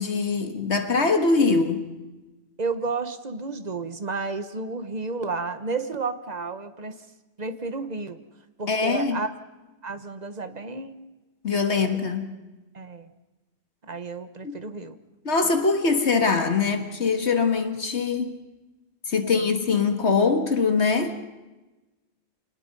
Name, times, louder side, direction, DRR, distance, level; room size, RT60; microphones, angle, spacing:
voice 1, 0.0-1.9 8.7-9.2 11.4-12.3 14.4-14.6 15.3-18.4 19.1-21.2, left 4 dB, 70° left, 1.9 m, -23 dB
voice 2, 2.6-7.0 7.4-8.2 8.6-9.3 9.8-11.0 11.7-12.1 12.7-13.1 13.8-15.0 19.2-19.5, right 3 dB, 35° right, 1.3 m, -32 dB
27.0 x 20.0 x 5.4 m
omnidirectional pair, 1.2 m